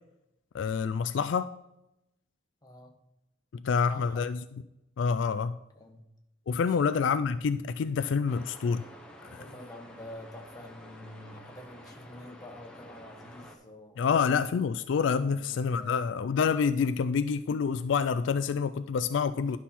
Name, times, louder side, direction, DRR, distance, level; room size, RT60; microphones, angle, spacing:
voice 1, 0.5-1.5 3.5-4.4 5.0-5.6 6.5-8.8 14.0-19.6, left 6 dB, 70° left, 0.3 m, -27 dB
voice 2, 2.6-2.9 3.6-4.3 5.8-6.0 6.8-6.9 8.3-8.4 9.3-14.5 15.3-16.1, left 1 dB, 20° left, 1.2 m, -47 dB
sound 1, 8.3-13.6, equal, 5° left, 1.2 m, -50 dB
11.0 x 5.8 x 4.2 m
head